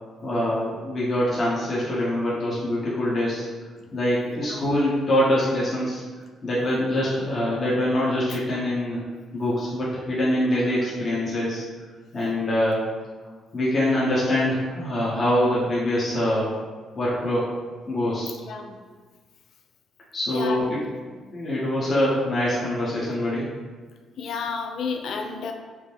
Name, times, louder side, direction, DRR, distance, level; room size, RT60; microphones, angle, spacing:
voice 1, 0.2-3.4 3.9-6.0 6.4-9.0 9.3-11.6 12.1-12.8 13.5-16.5 17.0-17.5 17.9-18.3 20.1-20.8 21.1-23.4, left 1 dB, 40° left, -8 dB, 1.0 m, -24 dB
voice 2, 4.3-4.7 8.3-8.4 18.5-18.8 20.3-20.7 24.2-25.5, left 5 dB, 70° left, 4 dB, 0.4 m, -32 dB
5.0 x 2.1 x 3.3 m, 1.5 s
cardioid pair, 90°, 0 cm